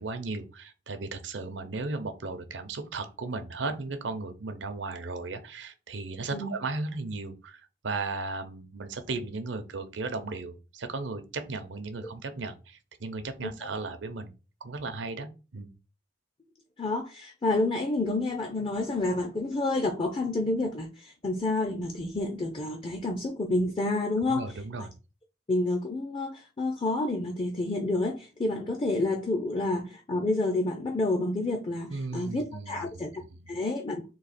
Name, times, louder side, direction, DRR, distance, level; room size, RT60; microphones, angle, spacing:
voice 1, 0.0-14.3 14.6-15.7 24.3-24.9 31.9-33.6, right 3 dB, 80° right, 0.7 m, -36 dB
voice 2, 16.8-24.5 25.5-34.1, left 2 dB, 30° left, 0.5 m, -29 dB
4.0 x 2.8 x 4.1 m
head